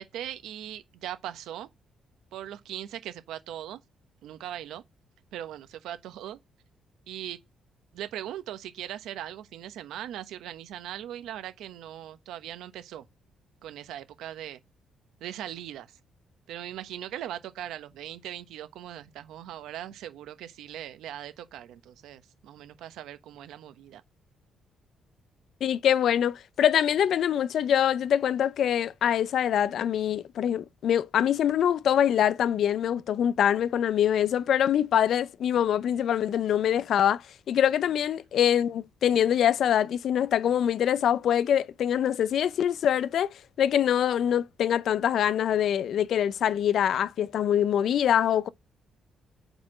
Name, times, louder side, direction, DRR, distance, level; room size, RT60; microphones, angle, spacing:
voice 1, 0.0-1.7 2.3-3.8 4.2-4.8 5.3-6.4 7.1-7.4 7.9-13.0 13.6-14.6 15.2-16.0 16.5-24.0, right 11 dB, 85° right, 1.0 m, -39 dB
voice 2, 25.6-48.5, left 9 dB, 70° left, 0.4 m, -24 dB
5.0 x 4.4 x 6.0 m
cardioid pair, 90°, 0 cm